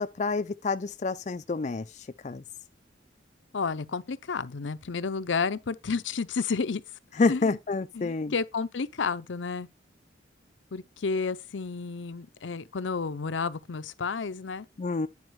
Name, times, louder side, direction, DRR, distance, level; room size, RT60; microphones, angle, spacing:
voice 1, 0.0-2.4 7.2-8.3 14.8-15.1, left 4 dB, 40° left, 0.4 m, -28 dB
voice 2, 3.5-6.8 7.3-7.6 7.9-9.7 10.7-14.7, left 5 dB, 75° left, 0.6 m, -31 dB
9.6 x 5.0 x 4.6 m
head